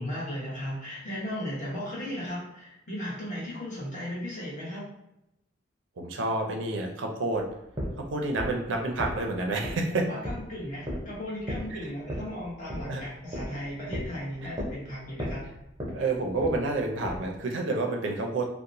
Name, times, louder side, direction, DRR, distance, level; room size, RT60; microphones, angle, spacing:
voice 1, 0.0-4.8 9.9-15.5, equal, 40° left, -7 dB, 1.0 m, -36 dB
voice 2, 6.0-7.4 8.0-10.0 12.9-13.0 15.9-18.5, right 2 dB, 75° right, 2 dB, 0.4 m, -29 dB
sound 1, 7.6-17.4, equal, 20° right, 0.6 m, -36 dB
2.9 x 2.0 x 2.5 m, 0.86 s
head